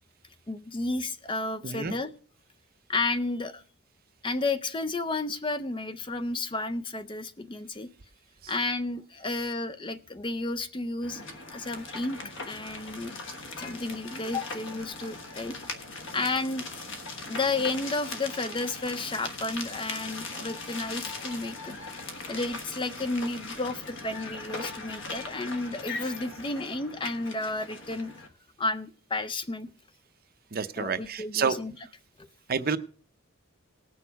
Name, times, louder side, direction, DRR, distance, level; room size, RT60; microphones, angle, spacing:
voice 1, 0.5-2.1 2.9-3.6 4.2-7.9 8.5-11.2 11.5-12.2 12.5-13.1 13.6-15.6 16.1-16.7 17.3-21.7 22.3-28.1 28.6-29.7 30.8-31.7, left 2 dB, 20° left, 12 dB, 0.4 m, -32 dB
voice 2, 1.6-2.0 8.4-8.5 30.5-31.6 32.5-32.8, right 5 dB, 40° right, 12 dB, 0.6 m, -29 dB
sound 1, 11.0-28.3, left 3 dB, 55° left, 1.3 m, -39 dB
18.5 x 6.3 x 4.6 m, 0.43 s
head